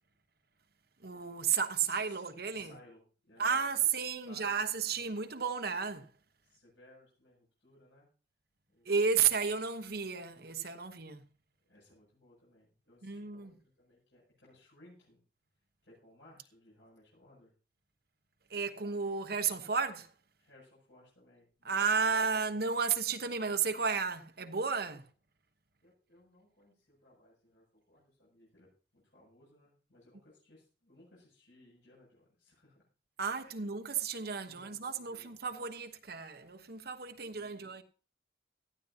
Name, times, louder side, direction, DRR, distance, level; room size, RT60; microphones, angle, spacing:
voice 1, 1.0-2.7 3.4-6.1 8.8-11.2 13.0-13.5 18.5-20.1 21.6-25.1 33.2-37.8, right 6 dB, 60° right, 1.1 m, -33 dB
voice 2, 1.8-2.2 2.5-3.9 4.2-4.7 6.4-8.1 8.7-9.3 11.6-15.2 15.8-17.5 20.4-22.1 22.4-22.6 25.8-32.8 33.3-33.6 34.4-35.8 37.3-37.7, left 1 dB, 90° left, 7.7 m, -62 dB
18.0 x 13.0 x 2.9 m
head